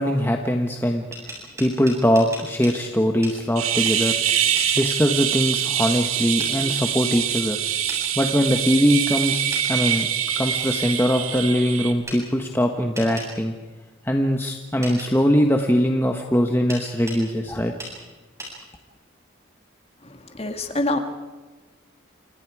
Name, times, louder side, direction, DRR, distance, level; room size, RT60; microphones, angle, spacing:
voice 1, 0.0-1.3 1.6-4.2 4.8-7.6 8.2-10.1 10.4-13.5 14.0-17.7, equal, 10° left, 3 dB, 1.2 m, -21 dB
sound 1, 0.9-2.8 3.2-3.4 4.6-4.7 6.4-6.5 7.9-8.0 9.5-9.7 12.1-12.2 12.9-13.3 14.8-15.1 16.7-17.2 17.8-17.9 18.4-18.5, right 1 dB, 15° right, 7.7 m, -35 dB
sound 2, 3.6-11.9, right 9 dB, 85° right, 2.1 m, -24 dB
voice 2, 20.0-21.0, left 2 dB, 30° left, 6 dB, 2.1 m, -26 dB
29.5 x 26.0 x 4.8 m, 1.3 s
head